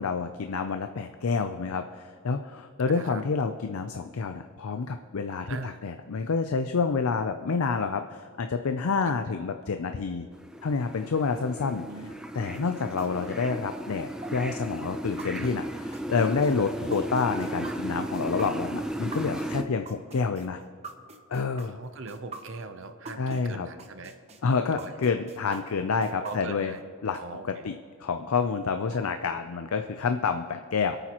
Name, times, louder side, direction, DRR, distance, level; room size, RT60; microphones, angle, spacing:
voice 1, 0.0-10.3 10.6-11.9 12.3-15.6 16.1-20.6 21.3-21.8 23.2-23.7 24.4-26.7 27.0-27.2 27.6-27.7 28.0-31.0, left 5 dB, 80° left, 7 dB, 0.5 m, -28 dB
voice 2, 2.9-3.2 5.5-5.8 9.0-9.2 11.8-12.1 13.2-13.3 15.4-15.5 21.6-24.2 24.7-24.9 26.2-26.8 27.1-27.7 28.9-29.1, right 3 dB, 60° right, 8 dB, 0.7 m, -41 dB
sound 1, 10.3-19.6, right 1 dB, 5° right, 0.6 m, -35 dB
sound 2, 12.5-23.4 23.8-26.8, right 3 dB, 30° right, 0.9 m, -43 dB
26.5 x 9.0 x 3.0 m, 2.2 s
head